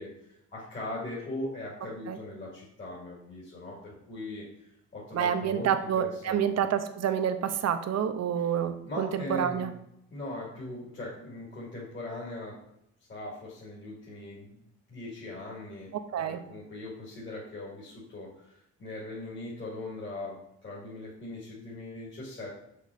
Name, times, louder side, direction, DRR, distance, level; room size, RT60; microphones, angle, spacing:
voice 1, 0.0-4.4 4.9-5.7 6.0-6.5 8.8-9.7 10.1-12.6 13.1-14.6 14.9-22.5, left 2 dB, 40° left, -6 dB, 2.7 m, -40 dB
voice 2, 5.1-9.7 16.1-16.4, right 8 dB, 60° right, 9 dB, 0.8 m, -28 dB
6.5 x 6.0 x 4.1 m, 0.77 s
cardioid pair, 90°, 30 cm